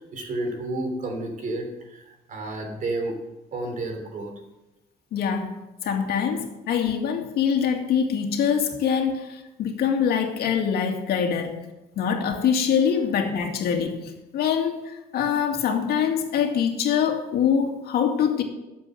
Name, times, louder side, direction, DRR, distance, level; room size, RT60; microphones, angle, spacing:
voice 1, 0.0-3.2 3.5-4.3, right 2 dB, 50° right, 4 dB, 3.3 m, -31 dB
voice 2, 5.1-11.5 12.0-18.4, left 7 dB, 70° left, 4 dB, 2.2 m, -24 dB
12.0 x 7.7 x 7.7 m, 1.0 s
cardioid pair, 110°, 17 cm